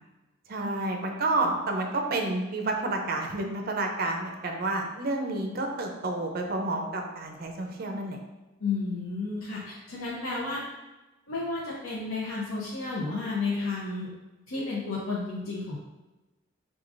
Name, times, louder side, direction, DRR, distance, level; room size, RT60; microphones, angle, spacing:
voice 1, 0.5-8.2, right 2 dB, 45° right, 2 dB, 0.6 m, -30 dB
voice 2, 8.6-10.6 11.3-14.1 14.5-15.8, left 3 dB, 85° left, -6 dB, 0.7 m, -32 dB
4.8 x 3.7 x 2.6 m, 1.1 s
head